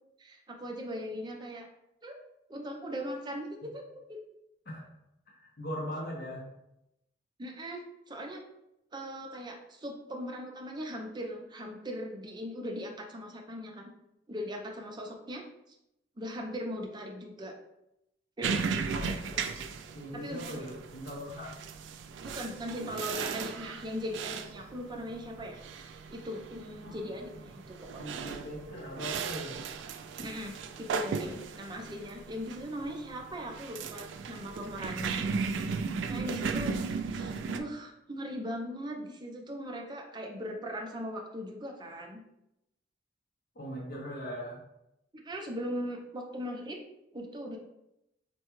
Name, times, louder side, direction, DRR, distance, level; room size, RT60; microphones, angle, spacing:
voice 1, 0.2-1.7 2.0-2.2 2.5-3.8 4.1-4.2 7.4-8.4 8.9-13.9 14.3-15.8 16.2-17.5 18.4-18.7 20.1-20.6 22.2-25.6 26.1-28.2 30.1-35.2 36.0-36.8 37.1-42.2 45.1-46.8 47.1-47.6, equal, 25° right, 1 dB, 0.5 m, -39 dB
voice 2, 5.3-6.4 18.9-19.2 19.9-21.5 26.8-27.1 27.3-27.5 28.0-29.6 43.6-44.6, equal, 55° left, -4 dB, 0.7 m, -40 dB
sound 1, 18.4-37.6, right 5 dB, 80° right, 0.3 m, -36 dB
4.6 x 2.2 x 3.0 m, 0.85 s
head